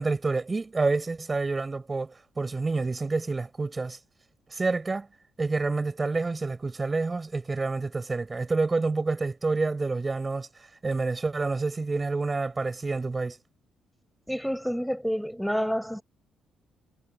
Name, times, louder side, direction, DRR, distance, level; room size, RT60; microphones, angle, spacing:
voice 1, 0.0-4.0 4.5-5.1 5.4-10.5 10.8-13.4, right 3 dB, 25° right, 5.4 m, -28 dB
voice 2, 14.3-16.0, equal, ahead, 5.1 m, -29 dB
cardioid pair, 90°, 0 cm